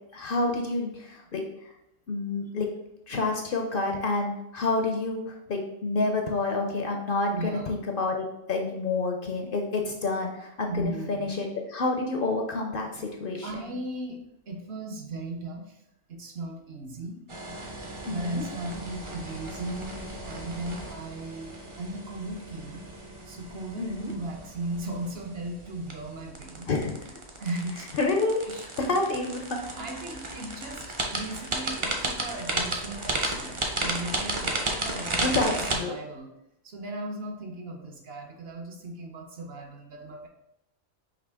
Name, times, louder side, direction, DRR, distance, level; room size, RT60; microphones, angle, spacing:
voice 1, 0.1-1.4 2.1-2.7 3.1-13.7 18.1-18.4 23.8-24.1 26.7-27.0 27.9-28.4 28.8-29.6 35.2-35.5 35.8-35.9, left 3 dB, 60° left, 2 dB, 0.7 m, -28 dB
voice 2, 7.3-7.7 10.7-11.3 13.4-14.2 14.5-15.8 16.1-17.2 18.1-22.9 23.2-26.7 27.4-27.9 28.5-28.7 29.8-35.4 35.7-36.3 36.6-40.3, right 2 dB, 60° right, 2 dB, 0.9 m, -37 dB
sound 1, 17.3-35.8, right 2 dB, 35° right, 0.5 m, -34 dB
5.0 x 2.8 x 3.4 m, 0.83 s
omnidirectional pair, 1.2 m